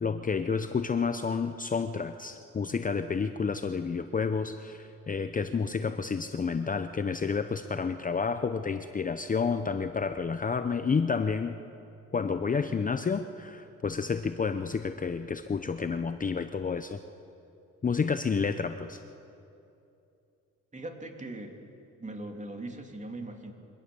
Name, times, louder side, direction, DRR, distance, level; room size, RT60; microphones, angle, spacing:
voice 1, 0.0-11.6 12.1-17.0 17.8-19.0, left 5 dB, 25° left, 9 dB, 0.7 m, -30 dB
voice 2, 20.7-21.6 22.0-23.5, right 2 dB, 25° right, 3 dB, 2.8 m, -40 dB
23.5 x 18.0 x 6.9 m, 2.7 s
cardioid pair, 90°, 30 cm